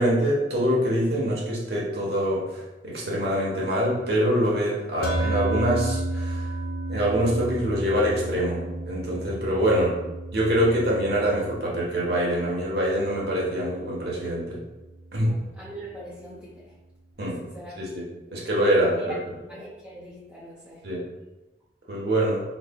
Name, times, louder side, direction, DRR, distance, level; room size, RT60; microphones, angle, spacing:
voice 1, 0.0-6.4 6.9-9.9 10.3-14.6 15.1-15.3 17.2-17.4 17.8-18.0 18.3-19.3 20.8-21.0 21.9-22.4, equal, 60° right, -4 dB, 1.1 m, -24 dB
sound 1, 5.0-15.5, right 2 dB, 55° left, 0.5 m, -33 dB
voice 2, 15.2-16.5 17.4-17.8 19.0-19.1 19.4-20.8, right 1 dB, 5° right, -10 dB, 0.6 m, -42 dB
4.6 x 3.1 x 2.3 m, 1.0 s
head